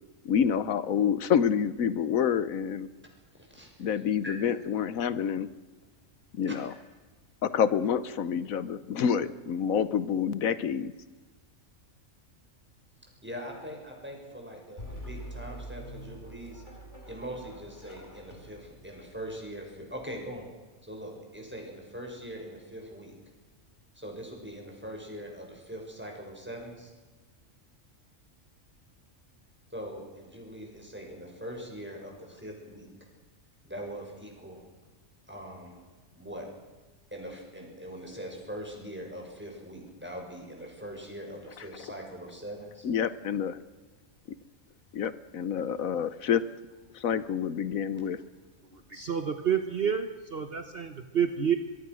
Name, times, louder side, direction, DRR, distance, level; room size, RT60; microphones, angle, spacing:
voice 1, 0.2-2.9 3.8-5.5 6.3-6.7 7.4-10.9 42.8-43.6 44.9-46.4 46.9-48.2, left 8 dB, 85° left, 15 dB, 1.3 m, -27 dB
voice 2, 3.3-4.4 6.5-6.6 13.2-16.6 17.1-20.5 20.8-23.1 23.9-26.9 29.7-32.9 33.6-34.6 35.3-35.7 36.1-36.5 37.1-42.8, equal, 10° right, 1 dB, 6.2 m, -42 dB
sound 1, 14.8-20.3, right 1 dB, 35° left, 4.3 m, -45 dB
voice 3, 48.7-51.6, right 8 dB, 50° right, 8 dB, 1.3 m, -29 dB
24.0 x 22.5 x 6.3 m, 1.3 s
omnidirectional pair, 1.4 m